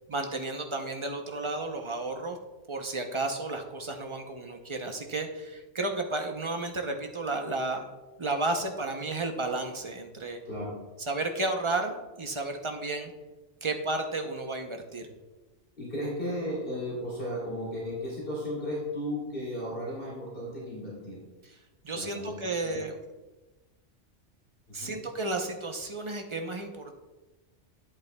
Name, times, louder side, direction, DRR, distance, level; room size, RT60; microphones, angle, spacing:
voice 1, 0.1-2.4 2.7-7.9 8.2-10.4 11.1-13.1 13.6-15.1 21.8-23.0 24.7-26.9, right 2 dB, 35° right, 4 dB, 0.5 m, -32 dB
voice 2, 15.8-21.2 21.9-22.8 24.7-24.9, equal, 45° left, -6 dB, 3.0 m, -35 dB
10.5 x 8.5 x 2.2 m, 1.1 s
omnidirectional pair, 1.2 m